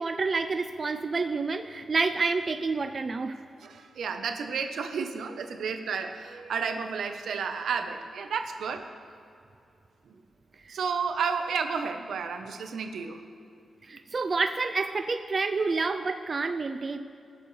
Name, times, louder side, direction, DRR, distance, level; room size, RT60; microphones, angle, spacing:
voice 1, 0.0-3.4 13.8-17.0, right 4 dB, 35° right, 8 dB, 0.4 m, -28 dB
voice 2, 3.6-8.8 10.1-10.2 10.7-13.2, right 5 dB, 85° right, 6 dB, 0.8 m, -32 dB
20.5 x 7.0 x 3.2 m, 2.5 s
wide cardioid pair, 130°, 0 cm